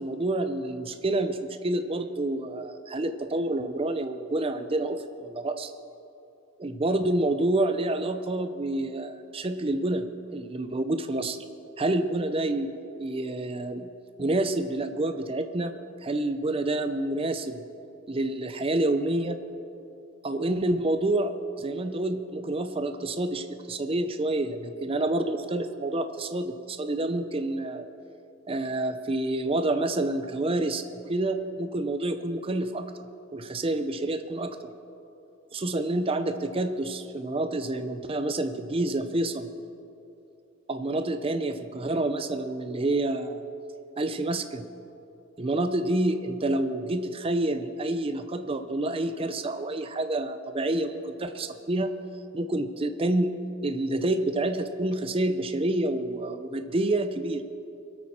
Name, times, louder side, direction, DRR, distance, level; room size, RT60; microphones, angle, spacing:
voice 1, 0.0-5.7 6.6-10.1 10.3-11.4 11.8-12.7 13.0-13.9 14.2-15.7 16.0-17.6 18.1-19.4 20.2-27.8 28.5-30.8 31.1-32.9 33.3-34.6 35.5-39.5 40.7-43.4 44.0-44.6 45.4-51.9 52.3-53.4 53.6-57.4, right 2 dB, 30° right, 9 dB, 0.6 m, -28 dB
23.0 x 8.7 x 4.3 m, 2.7 s
head